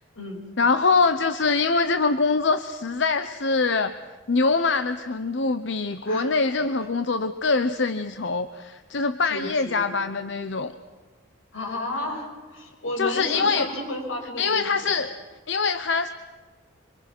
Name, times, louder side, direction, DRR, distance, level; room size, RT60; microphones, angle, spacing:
voice 1, 0.6-3.9 4.3-10.7 13.0-13.7 14.4-15.2 15.5-16.1, left 4 dB, 60° left, 10 dB, 0.8 m, -23 dB
voice 2, 6.0-6.3 9.3-9.9 11.5-14.9, left 1 dB, 85° left, 0 dB, 7.6 m, -32 dB
26.5 x 25.5 x 6.1 m, 1.4 s
head